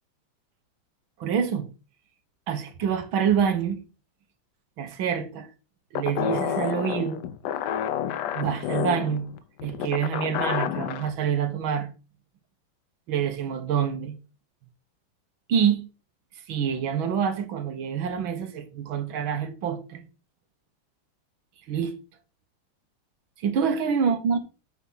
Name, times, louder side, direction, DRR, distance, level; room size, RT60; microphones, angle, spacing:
voice 1, 1.2-1.7 2.5-3.8 4.8-5.5 5.9-7.2 8.3-9.3 9.6-11.9 13.1-14.2 15.5-15.8 16.5-20.0 21.7-22.0 23.4-24.4, right 7 dB, 80° right, 1.9 m, -26 dB
sound 1, 6.0-11.1, left 10 dB, 70° left, 1.1 m, -29 dB
8.5 x 5.0 x 5.5 m
omnidirectional pair, 2.2 m